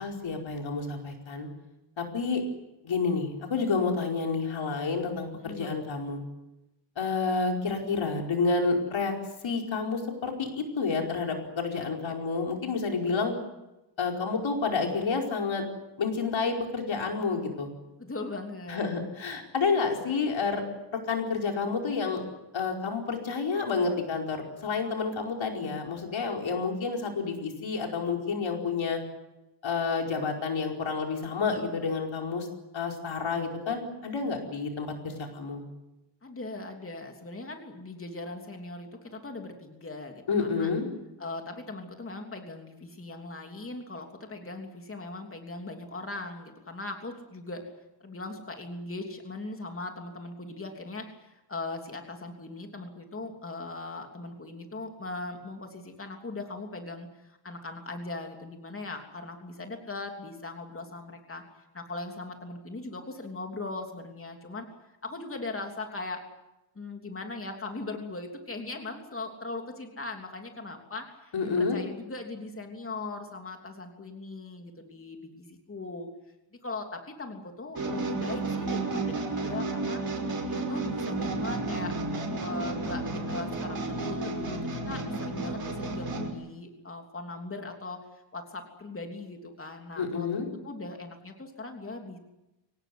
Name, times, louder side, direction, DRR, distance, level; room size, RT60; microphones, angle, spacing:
voice 1, 0.0-1.5 2.0-2.4 2.8-6.2 7.0-9.1 9.4-13.3 14.0-15.6 16.0-17.7 18.7-20.6 20.9-22.2 22.5-29.0 29.6-32.5 32.7-35.6 40.3-40.9 71.3-71.8 90.0-90.5, left 4 dB, 85° left, 2 dB, 5.0 m, -29 dB
voice 2, 5.4-5.8 11.7-12.1 18.0-18.9 36.2-40.7 41.2-47.7 48.0-61.4 61.7-64.7 65.0-66.2 66.7-76.1 76.6-80.0 80.4-82.0 82.4-92.2, left 2 dB, 30° left, 3 dB, 3.2 m, -39 dB
sound 1, 77.7-86.3, right 2 dB, 50° right, 5.7 m, -32 dB
25.0 x 18.5 x 9.6 m, 0.97 s
wide cardioid pair, 140°, 45 cm